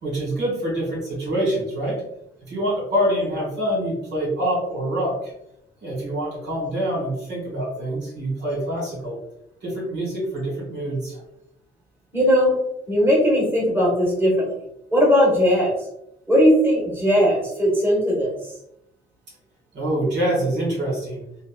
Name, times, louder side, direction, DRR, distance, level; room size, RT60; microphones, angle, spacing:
voice 1, 0.0-2.0 2.5-5.3 5.8-9.2 9.6-11.2 19.7-21.2, right 1 dB, 65° right, -4 dB, 1.5 m, -25 dB
voice 2, 12.1-12.6 12.9-14.5 14.9-15.7 16.3-18.4, equal, 10° right, -4 dB, 1.4 m, -18 dB
3.9 x 2.0 x 2.3 m, 0.81 s
cardioid pair, 90°, 20 cm